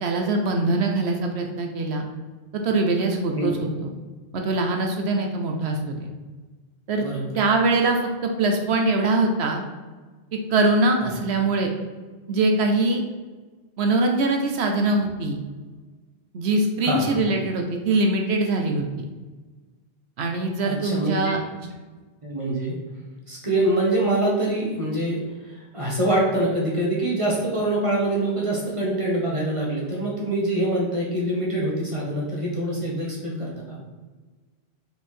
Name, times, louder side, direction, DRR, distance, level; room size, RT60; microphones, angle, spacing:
voice 1, 0.0-2.1 2.5-3.9 4.3-6.1 6.9-7.1 7.4-9.6 10.5-11.7 12.3-13.0 13.8-15.4 16.3-18.9 20.2-21.4, right 2 dB, 80° right, 3 dB, 1.1 m, -22 dB
voice 2, 7.0-7.3 11.0-11.1 16.8-17.2 20.6-21.3 22.2-22.8 23.3-25.2 25.7-33.8, right 1 dB, 30° right, -4 dB, 1.6 m, -24 dB
5.3 x 4.5 x 4.5 m, 1.3 s
omnidirectional pair, 1.1 m